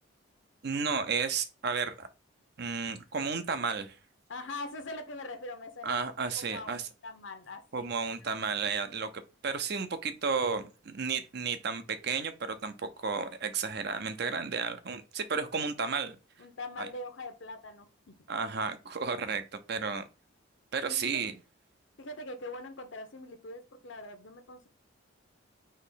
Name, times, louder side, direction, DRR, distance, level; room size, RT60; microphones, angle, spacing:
voice 1, 0.6-2.1 2.6-4.0 5.8-6.9 7.7-16.2 16.8-16.9 18.3-20.1 20.7-21.3, right 5 dB, 50° right, 0.6 m, -33 dB
voice 2, 4.3-6.1 6.5-7.9 8.2-8.6 16.4-18.1 20.8-21.2 22.0-24.7, left 2 dB, 65° left, 0.9 m, -42 dB
4.2 x 3.0 x 4.0 m
head